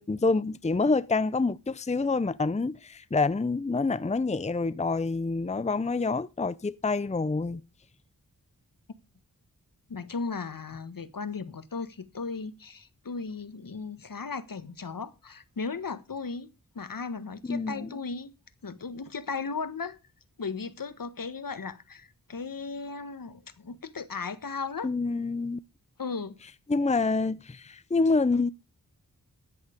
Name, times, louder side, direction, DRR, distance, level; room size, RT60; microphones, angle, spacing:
voice 1, 0.0-7.6 17.5-17.9 24.8-25.6 26.7-28.5, left 3 dB, 20° left, 0.6 m, -27 dB
voice 2, 9.9-18.3 18.6-20.0 20.4-24.9 26.0-26.4, left 4 dB, 70° left, 1.5 m, -36 dB
13.5 x 9.3 x 5.2 m
wide cardioid pair, 50°, 35 cm